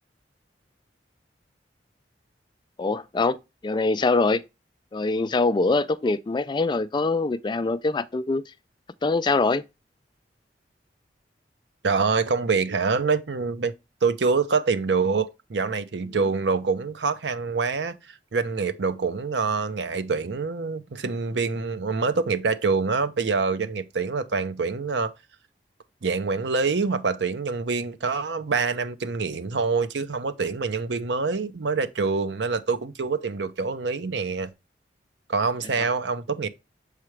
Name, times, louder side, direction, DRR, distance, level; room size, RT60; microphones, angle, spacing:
voice 1, 2.8-3.4 3.6-4.4 4.9-8.4 9.0-9.6, left 3 dB, 25° left, 0.3 m, -23 dB
voice 2, 11.8-13.7 14.0-25.1 26.0-34.5 35.3-36.5, right 4 dB, 85° right, 0.6 m, -25 dB
6.7 x 4.8 x 3.2 m
head